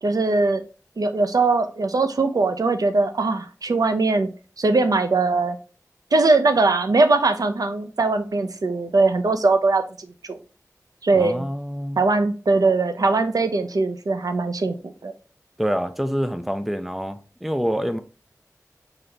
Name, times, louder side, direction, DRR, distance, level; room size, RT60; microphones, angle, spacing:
voice 1, 0.0-0.6 1.0-4.3 4.6-5.6 6.1-9.8 10.3-10.4 11.0-11.5 12.0-15.1, right 3 dB, 85° right, 0.5 m, -20 dB
voice 2, 11.1-12.0 15.6-18.0, equal, 5° right, 0.5 m, -26 dB
4.0 x 3.9 x 3.3 m
wide cardioid pair, 60°, 6 cm